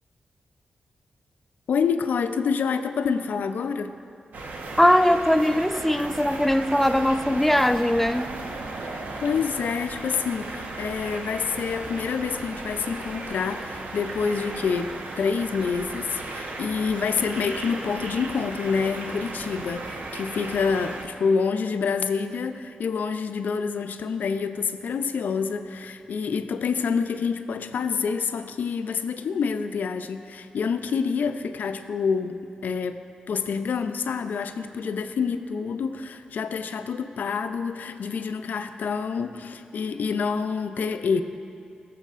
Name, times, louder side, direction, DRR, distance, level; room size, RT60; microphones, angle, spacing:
voice 1, 1.7-4.0 8.9-33.0 33.3-41.2, left 5 dB, 75° left, 0.5 m, -27 dB
sound 1, 4.3-21.0, right 2 dB, 70° right, 0.9 m, -36 dB
voice 2, 4.8-8.4, left 1 dB, 5° left, 0.5 m, -20 dB
18.0 x 7.1 x 2.5 m
supercardioid pair, 40°, 3 cm